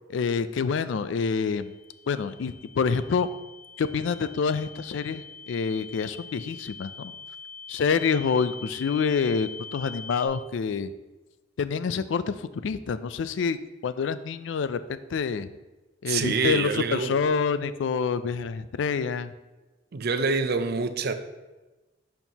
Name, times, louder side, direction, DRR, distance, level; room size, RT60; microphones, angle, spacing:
voice 1, 0.1-1.7 2.1-3.3 3.8-7.1 7.7-10.9 11.6-13.6 13.8-15.5 16.0-19.3, left 5 dB, 70° left, 0.4 m, -27 dB
sound 1, 1.4-10.3, left 5 dB, 45° left, 1.8 m, -44 dB
voice 2, 16.1-17.2 19.9-21.1, right 4 dB, 55° right, 0.5 m, -26 dB
11.0 x 4.5 x 2.8 m
head